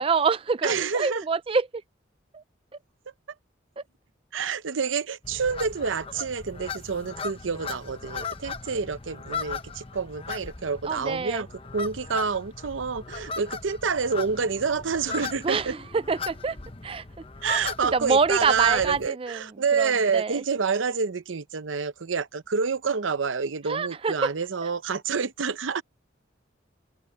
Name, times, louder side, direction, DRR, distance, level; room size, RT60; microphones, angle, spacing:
voice 1, 0.0-1.7 2.3-2.4 10.9-11.4 15.4-16.6 16.8-17.0 17.5-17.6 17.9-19.4 19.8-20.4 23.7-24.1, right 5 dB, 30° right, 0.4 m, -26 dB
voice 2, 0.6-1.2 4.3-11.5 11.7-15.8 17.4-25.8, right 5 dB, 85° right, 0.7 m, -28 dB
sound 1, 5.2-19.1, left 5 dB, 30° left, 0.9 m, -38 dB
open air
head